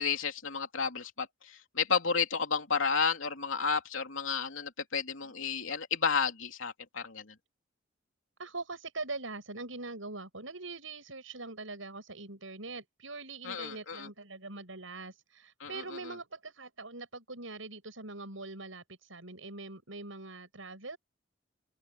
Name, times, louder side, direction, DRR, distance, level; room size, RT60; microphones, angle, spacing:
voice 1, 0.0-7.3 13.4-14.1 15.6-15.8, left 5 dB, 90° left, 3.2 m, -32 dB
voice 2, 8.4-21.0, right 3 dB, 90° right, 7.9 m, -43 dB
open air
head